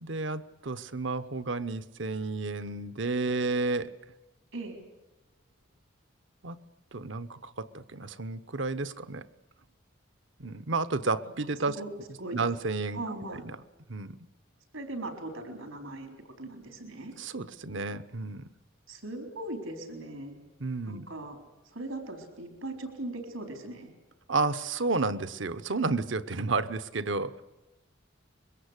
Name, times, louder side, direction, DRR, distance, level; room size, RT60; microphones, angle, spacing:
voice 1, 0.0-3.9 6.4-6.6 6.9-9.2 10.4-11.8 12.3-13.0 13.3-13.6 13.9-14.2 17.2-18.5 20.6-21.1 24.3-27.4, right 3 dB, 65° right, 14 dB, 1.0 m, -31 dB
voice 2, 12.9-13.5 14.7-16.1 16.4-17.1 18.9-20.4 20.9-21.4 21.7-23.9, right 2 dB, 80° right, 5 dB, 4.0 m, -39 dB
25.0 x 22.5 x 8.2 m, 1.0 s
head